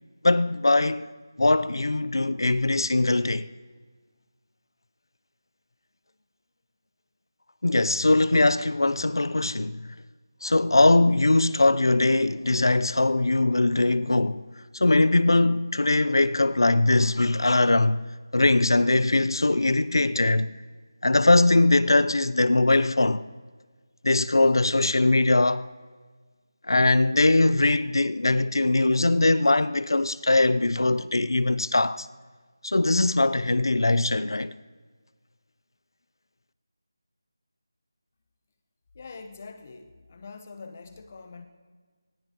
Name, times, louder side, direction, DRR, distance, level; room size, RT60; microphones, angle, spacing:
voice 1, 0.2-1.1 1.4-3.5 7.6-9.8 10.4-14.4 14.7-18.0 18.3-20.5 21.0-23.2 24.0-25.7 26.7-32.1 32.6-34.5, left 2 dB, 80° left, 0.6 m, -21 dB
voice 2, 38.9-41.5, left 4 dB, 30° left, 1.1 m, -44 dB
22.5 x 19.5 x 3.0 m
figure-of-eight pair, 170°, 2 cm